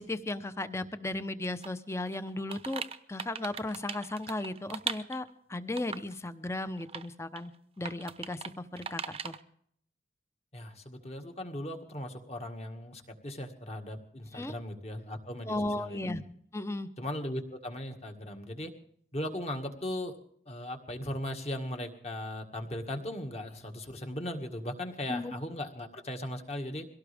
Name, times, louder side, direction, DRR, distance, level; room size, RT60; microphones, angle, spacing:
voice 1, 0.0-2.8 3.1-7.5 7.8-9.3 14.3-14.5 15.4-16.2 16.5-16.9 25.1-25.3, left 2 dB, 15° left, 12 dB, 0.8 m, -35 dB
sound 1, 1.6-1.7 2.1-5.3 5.8-6.2 6.6-7.1 7.4-7.5 7.9-8.5 8.8-9.4, right 6 dB, 30° right, 0.8 m, -39 dB
voice 2, 10.5-16.1 17.0-18.7 19.1-20.1 20.5-26.9, left 1 dB, 35° left, 4 dB, 1.9 m, -38 dB
23.0 x 17.5 x 3.5 m, 0.66 s
head